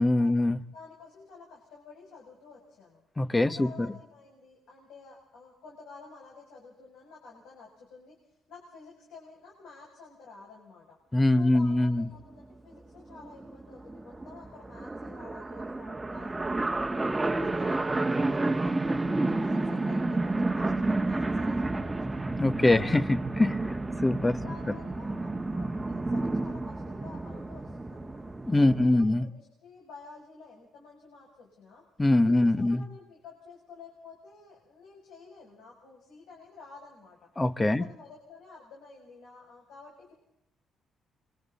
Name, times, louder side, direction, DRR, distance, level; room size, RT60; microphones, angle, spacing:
voice 1, 0.0-0.6 3.2-3.9 11.1-12.1 22.4-24.4 28.5-29.3 32.0-32.8 37.4-37.9, left 2 dB, 15° left, 1.2 m, -23 dB
voice 2, 0.7-3.0 3.4-8.2 8.5-11.0 11.3-17.0 17.4-18.8 19.1-21.9 22.7-23.1 23.7-23.8 24.4-28.2 28.7-31.8 32.2-37.2 37.6-40.1, left 4 dB, 80° left, 7.4 m, -51 dB
sound 1, 12.3-12.4 12.7-12.8 13.0-28.8, right 2 dB, 15° right, 1.4 m, -30 dB
27.5 x 25.5 x 4.2 m
cardioid pair, 90°, 0 cm